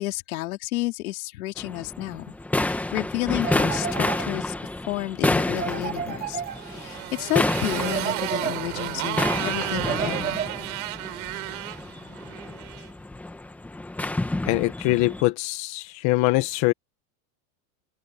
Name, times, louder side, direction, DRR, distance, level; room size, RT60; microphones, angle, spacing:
voice 1, 0.0-2.4 2.6-4.5 4.9-10.4, left 17 dB, 70° left, 3.8 m, -31 dB
sound 1, 1.6-15.2, left 2 dB, 5° left, 1.1 m, -29 dB
sound 2, 3.4-4.7 5.6-7.1 7.8-9.0 9.7-10.9, right 9 dB, 20° right, 2.7 m, -33 dB
Motorcycle, 6.4-12.9, right 18 dB, 70° right, 4.0 m, -32 dB
voice 2, 14.4-16.7, left 19 dB, 40° left, 1.4 m, -23 dB
open air
supercardioid pair, 160°, 44 cm